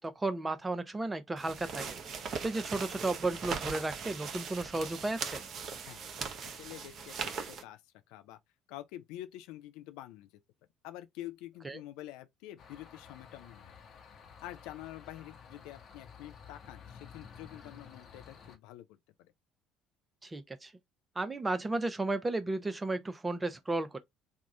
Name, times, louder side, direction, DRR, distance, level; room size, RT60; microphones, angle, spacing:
voice 1, 0.0-2.0 2.4-5.4 11.6-11.8 20.2-20.7 21.2-24.0, right 2 dB, 20° right, 0.8 m, -34 dB
sound 1, 1.4-7.6, right 5 dB, 50° right, 0.9 m, -40 dB
voice 2, 6.5-7.8 8.1-8.4 8.7-10.3 10.8-13.7 14.4-19.3, left 14 dB, 65° left, 0.5 m, -47 dB
sound 2, 12.6-18.6, left 6 dB, 50° left, 1.0 m, -52 dB
3.6 x 2.4 x 4.2 m
figure-of-eight pair, 55°, 0 cm